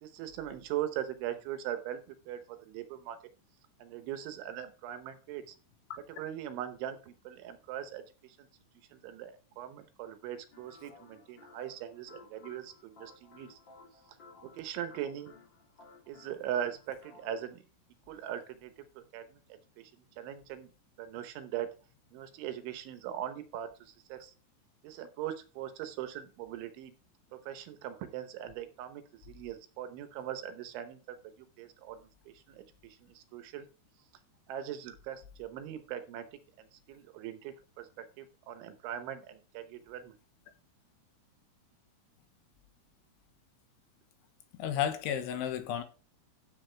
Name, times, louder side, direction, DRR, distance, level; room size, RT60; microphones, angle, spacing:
voice 1, 0.0-3.2 3.8-5.6 6.2-8.5 8.9-13.6 14.4-15.3 16.1-17.6 18.1-19.4 19.8-19.9 20.2-20.7 21.0-21.7 22.1-24.3 24.8-26.9 27.3-32.0 32.3-33.7 34.5-36.3 36.6-40.2, right 10 dB, 75° right, 3.2 m, -40 dB
sound 1, 10.5-17.5, left 4 dB, 40° left, 1.8 m, -57 dB
voice 2, 44.6-45.8, left 9 dB, 75° left, 3.3 m, -32 dB
14.5 x 7.5 x 3.4 m
omnidirectional pair, 5.8 m